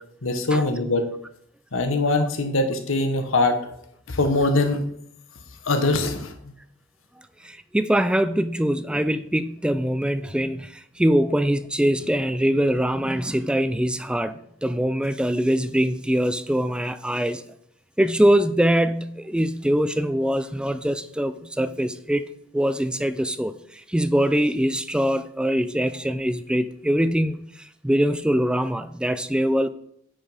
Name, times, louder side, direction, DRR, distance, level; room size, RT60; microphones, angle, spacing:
voice 1, 0.2-1.1 1.7-3.6 4.1-4.8 5.6-6.3, left 2 dB, 70° left, 6 dB, 1.1 m, -22 dB
voice 2, 7.4-17.4 18.0-22.3 22.5-29.7, equal, 5° right, 12 dB, 0.3 m, -23 dB
8.7 x 4.9 x 5.5 m, 0.71 s
head